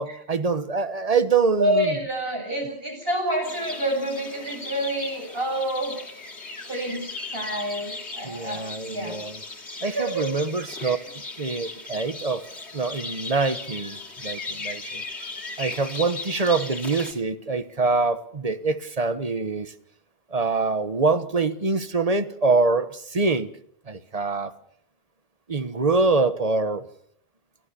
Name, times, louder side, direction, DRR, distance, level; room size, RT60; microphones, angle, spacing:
voice 1, 0.0-2.1 8.2-9.4 9.8-11.0 11.4-12.5 12.7-15.0 15.6-19.7 20.3-23.5 23.9-24.5 25.5-26.8, right 4 dB, 35° right, 11 dB, 1.4 m, -25 dB
voice 2, 1.6-5.9 6.6-9.2 9.8-10.2 10.8-11.0, right 1 dB, 60° right, 2 dB, 8.4 m, -28 dB
sound 1, 3.4-17.1, left 3 dB, 90° left, 2.9 m, -37 dB
29.5 x 14.5 x 6.9 m, 0.65 s
omnidirectional pair, 1.1 m